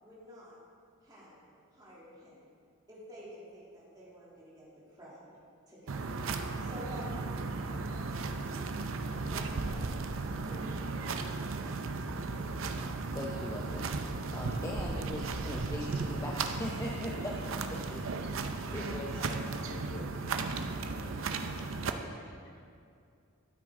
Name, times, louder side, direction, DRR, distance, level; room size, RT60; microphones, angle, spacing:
voice 1, 0.0-0.6 1.0-1.4 1.7-2.5 2.9-5.3 5.7-6.2 6.6-7.1 7.9-9.9 10.3-11.3 11.6-12.2, equal, 20° right, -8 dB, 2.8 m, -51 dB
sound 1, 5.9-21.9, right 3 dB, 65° right, 0.6 m, -35 dB
voice 2, 13.1-18.4 18.7-19.2, left 1 dB, 15° left, -3 dB, 0.7 m, -40 dB
voice 3, 18.8-20.1 20.8-22.6, left 2 dB, 40° left, 1 dB, 1.3 m, -50 dB
12.5 x 9.4 x 3.7 m, 2.4 s
head